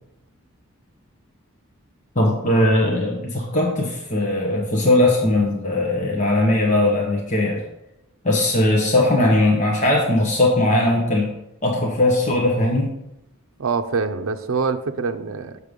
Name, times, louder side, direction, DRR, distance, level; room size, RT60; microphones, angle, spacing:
voice 1, 2.1-7.6 8.2-11.3 11.6-12.9, left 1 dB, 35° left, -2 dB, 1.2 m, -19 dB
voice 2, 13.6-15.6, right 4 dB, 80° right, 7 dB, 0.6 m, -24 dB
6.8 x 6.7 x 5.2 m, 0.89 s
head